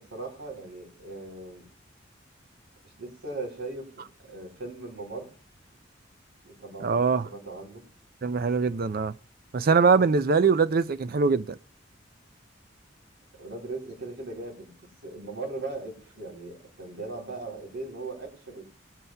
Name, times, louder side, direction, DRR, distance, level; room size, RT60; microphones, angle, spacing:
voice 1, 0.0-1.7 2.8-3.9 4.3-5.3 6.4-7.0 7.2-7.8 9.9-10.0 13.4-14.7 15.0-18.7, right 3 dB, 80° right, 3.4 m, -38 dB
voice 2, 6.8-7.3 8.2-9.2 9.5-11.6, right 5 dB, 50° right, 0.4 m, -22 dB
21.0 x 8.2 x 2.3 m
head